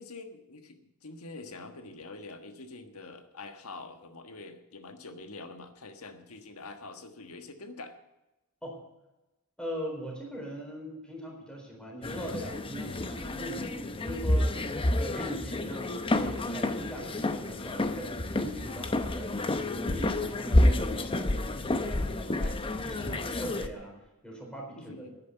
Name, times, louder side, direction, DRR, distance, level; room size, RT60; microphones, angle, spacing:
voice 1, 0.0-8.0 14.2-14.3 15.3-15.4 24.7-25.2, left 3 dB, 70° left, 7 dB, 1.5 m, -45 dB
voice 2, 9.6-14.6 15.0-19.4 19.7-21.4 21.8-23.9 24.2-25.0, equal, 5° left, -1 dB, 4.0 m, -41 dB
sound 1, 12.0-23.7, left 1 dB, 25° left, 0.7 m, -29 dB
10.5 x 9.6 x 9.0 m, 1.0 s
head